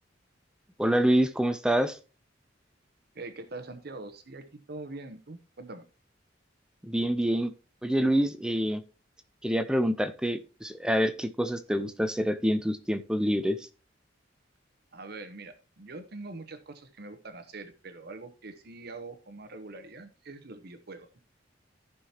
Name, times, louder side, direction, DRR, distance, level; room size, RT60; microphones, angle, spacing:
voice 1, 0.8-2.0 6.8-7.5 7.8-8.8 9.4-13.7, equal, 5° right, 0.5 m, -26 dB
voice 2, 3.1-5.8 14.9-21.2, right 3 dB, 60° right, 0.9 m, -43 dB
14.5 x 5.7 x 2.9 m
head